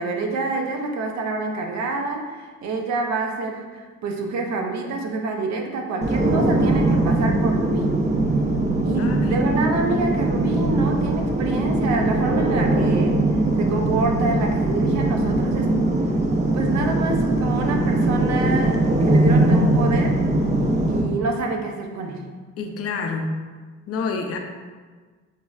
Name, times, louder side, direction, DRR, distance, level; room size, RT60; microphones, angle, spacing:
voice 1, 0.0-8.0 8.8-15.8 16.5-20.2 20.9-22.3, right 3 dB, 65° right, 2 dB, 0.6 m, -27 dB
sound 1, 6.0-21.0, right 2 dB, 25° right, 0.5 m, -21 dB
voice 2, 9.0-9.4 22.6-23.4 23.9-24.4, left 4 dB, 50° left, 4 dB, 0.5 m, -28 dB
5.4 x 2.0 x 2.3 m, 1.5 s
cardioid pair, 90°, 30 cm